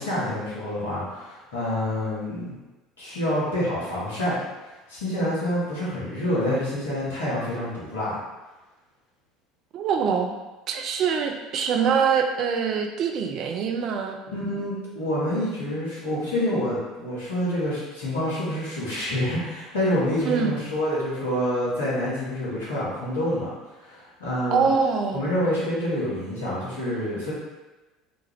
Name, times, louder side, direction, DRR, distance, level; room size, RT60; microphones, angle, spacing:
voice 1, 0.0-2.5 3.0-4.4 4.9-8.2 14.3-24.7 25.1-27.3, left 1 dB, 75° left, -8 dB, 1.1 m, -27 dB
voice 2, 9.7-10.3 10.7-14.2 20.3-20.5 24.5-25.2, right 6 dB, 45° right, 4 dB, 0.3 m, -24 dB
2.9 x 2.4 x 2.9 m, 1.1 s
figure-of-eight pair, 65°, 0 cm